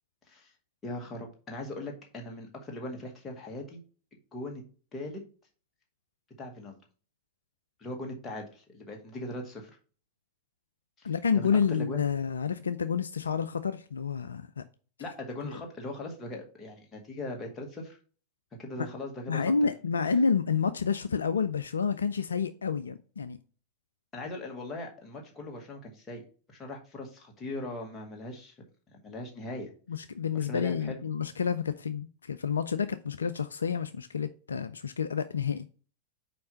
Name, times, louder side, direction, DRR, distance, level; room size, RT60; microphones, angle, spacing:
voice 1, 0.8-3.8 4.3-4.6 4.9-5.2 6.4-6.8 7.8-9.8 11.0-11.1 11.4-12.0 15.0-18.0 18.6-19.7 20.0-20.2 24.1-26.2 26.5-28.6 28.9-29.7 30.5-31.0, left 1 dB, 20° left, 2.0 m, -40 dB
voice 2, 11.0-14.6 15.4-15.5 19.3-23.4 29.9-35.7, left 6 dB, 70° left, 0.4 m, -29 dB
5.3 x 4.6 x 5.5 m
figure-of-eight pair, 90°, 0 cm